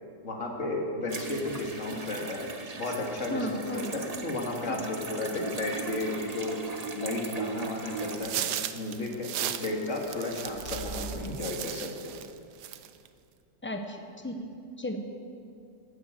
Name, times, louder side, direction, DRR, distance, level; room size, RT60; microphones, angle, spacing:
voice 1, 0.2-2.5 2.8-6.6 6.9-8.5 8.7-12.1, left 2 dB, 45° left, 0 dB, 2.4 m, -33 dB
sound 1, 1.1-8.2, right 4 dB, 30° right, 0.8 m, -38 dB
voice 2, 3.3-3.9 4.7-4.8 13.6-14.0 14.2-14.4 14.8-15.0, left 1 dB, 10° left, 4 dB, 0.9 m, -33 dB
sound 2, 7.5-11.2, right 3 dB, 75° left, 3.3 m, -47 dB
sound 3, 8.0-12.3 12.6-13.1, right 11 dB, 80° right, 1.3 m, -36 dB
17.5 x 9.5 x 6.8 m, 2.6 s
omnidirectional pair, 1.8 m